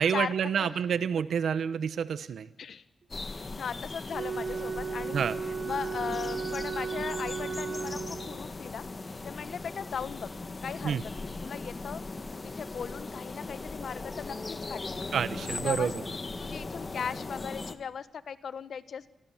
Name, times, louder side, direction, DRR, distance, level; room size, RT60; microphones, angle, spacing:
voice 1, 0.0-2.5 5.1-5.3 10.8-11.0 15.1-16.0, right 7 dB, 80° right, 14 dB, 1.1 m, -28 dB
sound 1, 3.1-17.7, left 3 dB, 25° left, 1.6 m, -39 dB
voice 2, 3.5-5.2 5.6-8.8 9.2-10.3 10.6-12.0 12.3-14.4 14.7-15.1 15.4-15.9 16.4-19.1, left 7 dB, 65° left, 13 dB, 1.4 m, -38 dB
Wind instrument woodwind instrument, 4.1-8.5, right 5 dB, 45° right, 1.7 m, -35 dB
28.0 x 23.0 x 7.4 m, 0.87 s
wide cardioid pair, 150°, 0 cm